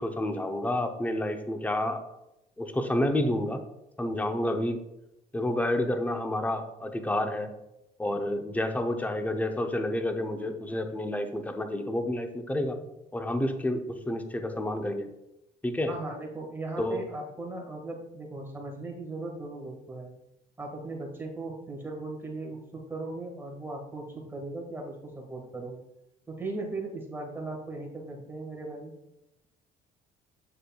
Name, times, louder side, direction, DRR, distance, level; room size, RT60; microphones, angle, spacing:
voice 1, 0.0-2.0 2.6-3.6 4.0-4.8 5.3-7.5 8.0-12.8 13.1-15.1 15.6-15.9 16.8-17.0, left 1 dB, 10° left, 6 dB, 0.7 m, -29 dB
voice 2, 15.9-20.1 20.6-25.8 26.3-28.9, right 2 dB, 15° right, 0 dB, 1.7 m, -38 dB
7.7 x 6.5 x 2.3 m, 0.87 s
cardioid pair, 110°, 17 cm